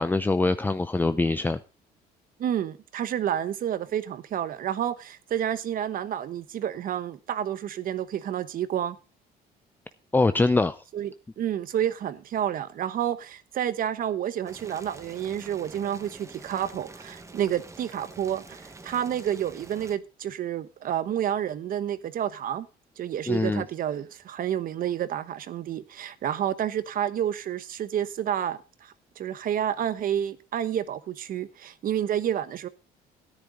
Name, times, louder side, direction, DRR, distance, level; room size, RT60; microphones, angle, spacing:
voice 1, 0.0-1.6 10.1-10.8 23.3-23.6, left 3 dB, 10° left, 0.5 m, -23 dB
voice 2, 2.4-9.0 10.9-22.7 23.0-32.7, right 10 dB, 55° right, 1.1 m, -29 dB
Boiling, 14.5-20.0, right 3 dB, 15° right, 1.4 m, -46 dB
13.0 x 10.0 x 3.8 m
cardioid pair, 110°, 17 cm